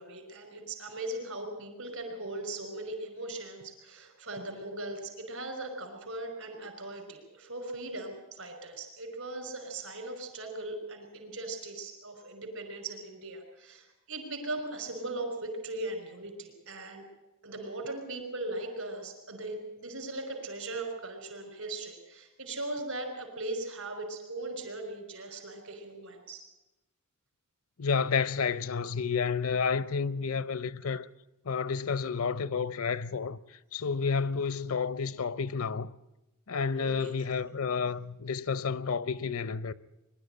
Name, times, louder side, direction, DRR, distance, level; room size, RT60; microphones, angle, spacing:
voice 1, 0.0-17.1 17.4-26.4 36.7-37.1, right 2 dB, 75° right, 5.3 m, -39 dB
voice 2, 27.8-31.1 31.4-33.4 33.7-35.9 36.5-39.7, left 5 dB, 75° left, 0.7 m, -30 dB
22.0 x 12.0 x 9.9 m
head